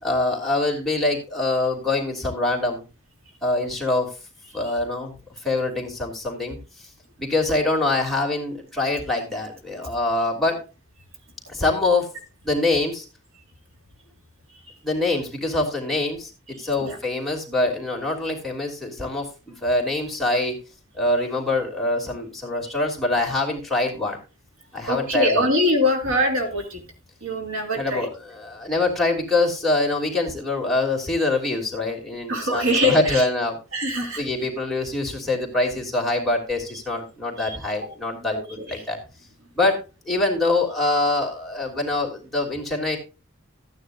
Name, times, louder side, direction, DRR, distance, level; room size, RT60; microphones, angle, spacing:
voice 1, 0.0-2.8 3.4-4.1 4.5-6.9 7.2-10.6 11.5-12.1 12.4-13.0 14.8-20.5 21.0-24.2 24.7-25.5 27.7-33.6 34.2-39.0 39.5-39.8 40.0-43.0, left 2 dB, ahead, -2 dB, 3.0 m, -24 dB
voice 2, 24.9-26.8 27.2-28.1 32.3-33.2 33.7-34.2 37.4-37.6 38.3-38.8, left 1 dB, 85° right, 2 dB, 3.0 m, -23 dB
15.0 x 9.7 x 2.6 m, 0.31 s
head